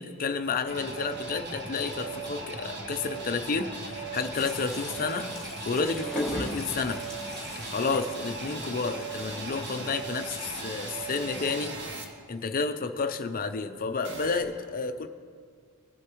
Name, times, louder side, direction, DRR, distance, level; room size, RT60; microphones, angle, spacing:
voice 1, 0.0-5.3 5.7-7.0 7.7-11.7 12.3-15.1, left 4 dB, 40° left, 8 dB, 0.5 m, -31 dB
sound 1, 0.7-12.0 14.0-14.4, right 3 dB, 55° right, 1.2 m, -37 dB
sound 2, 4.3-9.3, left 1 dB, 5° left, 2.4 m, -39 dB
20.0 x 8.2 x 3.0 m, 2.1 s
head